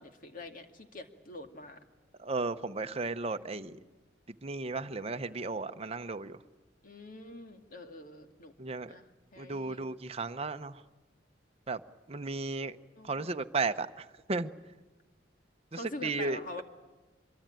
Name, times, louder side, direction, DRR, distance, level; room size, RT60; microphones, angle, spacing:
voice 1, 0.0-1.8 3.3-3.9 6.8-8.5 8.9-9.0 9.3-9.8 12.9-13.4 15.7-16.6, left 2 dB, 50° left, 6 dB, 2.3 m, -45 dB
voice 2, 2.2-3.8 4.4-6.4 8.6-8.9 9.4-10.7 11.7-11.8 12.1-12.7 13.1-13.9 14.3-14.5 15.7-16.6, right 3 dB, 35° right, 9 dB, 0.9 m, -34 dB
25.5 x 23.0 x 9.0 m, 1.2 s
head